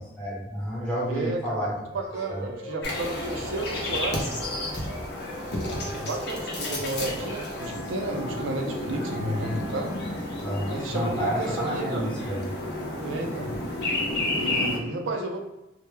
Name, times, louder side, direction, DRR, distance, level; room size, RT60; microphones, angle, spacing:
voice 1, 0.2-1.7 2.3-2.4 10.4-12.5, equal, 5° left, -8 dB, 0.8 m, -30 dB
voice 2, 1.1-1.7 1.9-4.3 5.9-9.9 10.7-12.2 13.0-13.5 14.1-15.5, right 2 dB, 75° right, 2 dB, 0.4 m, -32 dB
sound 1, 1.9-10.0, right 1 dB, 15° right, 0.4 m, -43 dB
sound 2, 2.8-14.8, left 1 dB, 55° left, 0.6 m, -31 dB
2.1 x 2.0 x 3.1 m, 0.95 s
head